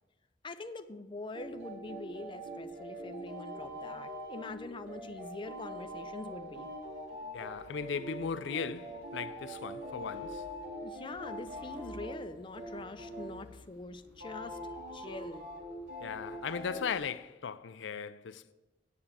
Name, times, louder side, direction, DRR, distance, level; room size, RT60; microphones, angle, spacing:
voice 1, 0.4-6.7 10.7-14.6 14.9-15.5, left 3 dB, 25° left, 0.5 m, -44 dB
sound 1, 1.3-17.0, equal, 65° right, 3.1 m, -43 dB
voice 2, 7.3-10.4 16.0-18.5, left 6 dB, 75° left, 0.4 m, -37 dB
9.3 x 7.0 x 7.2 m
head